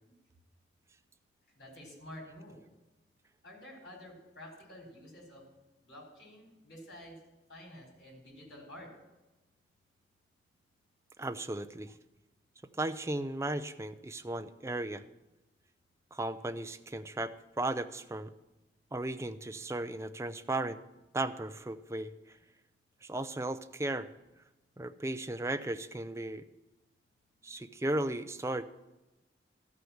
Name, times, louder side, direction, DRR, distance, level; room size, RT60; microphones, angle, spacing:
voice 1, 1.6-2.6 3.4-5.4 5.8-7.2 7.5-8.9 27.7-27.8, left 1 dB, 65° left, -1 dB, 4.5 m, -50 dB
voice 2, 11.2-12.0 12.8-15.0 16.1-18.3 18.9-20.8 21.1-22.4 23.0-24.1 24.8-26.5 27.4-28.6, right 2 dB, 15° right, 10 dB, 0.4 m, -35 dB
13.5 x 6.2 x 7.2 m, 1.1 s
head